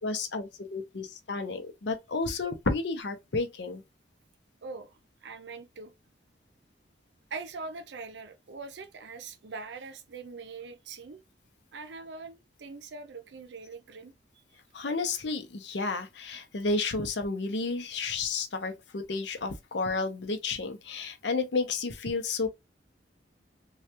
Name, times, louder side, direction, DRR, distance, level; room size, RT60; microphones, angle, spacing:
voice 1, 0.0-3.8 14.7-22.5, left 3 dB, 75° left, 0.7 m, -31 dB
voice 2, 4.6-4.9 5.2-5.9 7.3-11.2 11.7-14.1, right 4 dB, 75° right, 0.5 m, -42 dB
3.2 x 2.3 x 2.8 m
head